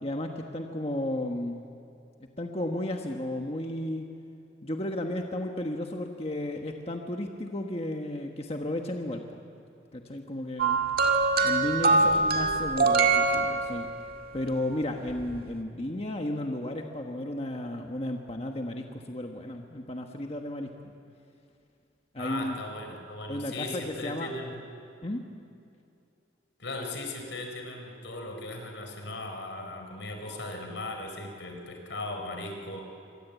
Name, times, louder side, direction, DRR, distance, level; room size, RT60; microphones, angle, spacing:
voice 1, 0.0-1.6 2.4-4.0 4.6-9.2 9.9-10.8 11.4-13.9 14.3-20.9 22.1-22.6 23.3-24.3 25.0-25.2, left 1 dB, 35° left, 3 dB, 1.4 m, -33 dB
sound 1, 10.6-14.1 15.2-15.4, right 3 dB, 50° right, 2.0 m, -24 dB
voice 2, 11.8-12.6 22.2-24.6 26.6-32.8, left 2 dB, 80° left, 4 dB, 4.3 m, -38 dB
26.5 x 23.0 x 8.3 m, 2.5 s
head